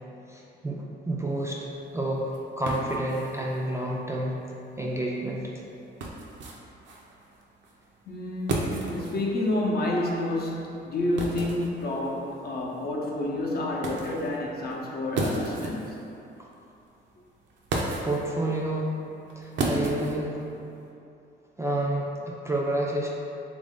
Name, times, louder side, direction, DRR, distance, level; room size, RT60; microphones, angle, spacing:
voice 1, 0.3-4.4 4.8-5.5 18.0-19.0 19.4-20.4 21.6-23.1, right 1 dB, 15° right, -3 dB, 0.3 m, -29 dB
sound 1, 1.3-20.9, right 2 dB, 65° right, 0.5 m, -36 dB
voice 2, 8.1-16.0, left 1 dB, 50° left, -2 dB, 0.6 m, -29 dB
3.1 x 2.6 x 3.6 m, 2.7 s
cardioid pair, 90°, 20 cm